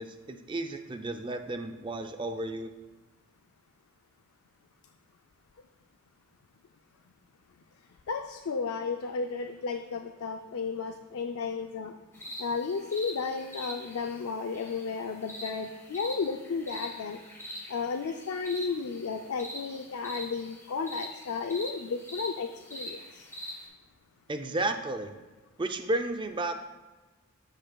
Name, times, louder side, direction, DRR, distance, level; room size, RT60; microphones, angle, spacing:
voice 1, 0.0-2.7 24.3-25.1 25.6-26.5, right 2 dB, 20° right, 7 dB, 0.4 m, -32 dB
voice 2, 8.1-11.9 12.4-17.2 17.7-23.3, left 5 dB, 80° left, 5 dB, 0.4 m, -33 dB
sound 1, 12.1-23.6, equal, 10° left, 1.3 m, -44 dB
14.0 x 5.3 x 2.3 m, 1.2 s
head